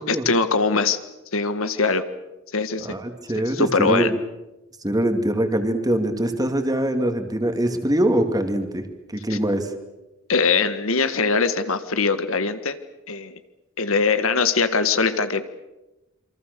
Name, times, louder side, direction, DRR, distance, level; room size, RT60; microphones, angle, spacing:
voice 1, 0.1-1.0 1.3-2.0 2.5-2.9 3.3-4.1 9.3-9.4 10.3-12.8 13.1-13.4 13.8-15.4, left 4 dB, 85° left, 11 dB, 1.6 m, -22 dB
voice 2, 2.8-4.1 4.8-8.8 9.1-9.7, right 1 dB, 20° right, 6 dB, 2.4 m, -23 dB
27.5 x 24.0 x 6.8 m, 1.0 s
head